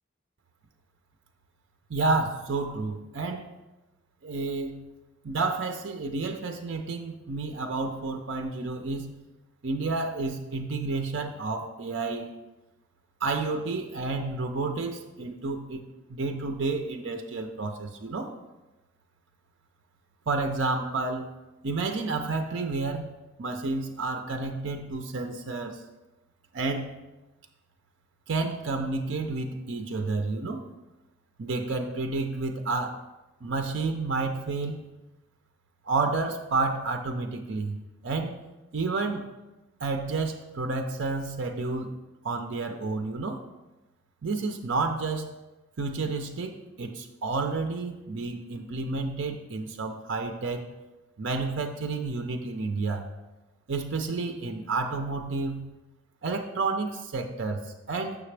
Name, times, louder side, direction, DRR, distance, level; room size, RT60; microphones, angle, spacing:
voice 1, 1.9-3.5 4.2-4.8 5.2-9.0 9.6-12.3 13.2-15.8 16.1-18.3 20.3-21.3 21.6-23.0 23.4-25.8 26.5-27.0 28.3-30.6 31.4-33.0 33.4-34.8 35.9-37.8 38.0-38.4 38.7-39.3 39.8-41.9 42.2-43.4 44.2-45.3 45.8-50.6 51.2-53.1 53.7-55.6 56.2-58.2, right 3 dB, 60° right, 5 dB, 0.5 m, -30 dB
6.5 x 5.9 x 3.3 m, 1.0 s
head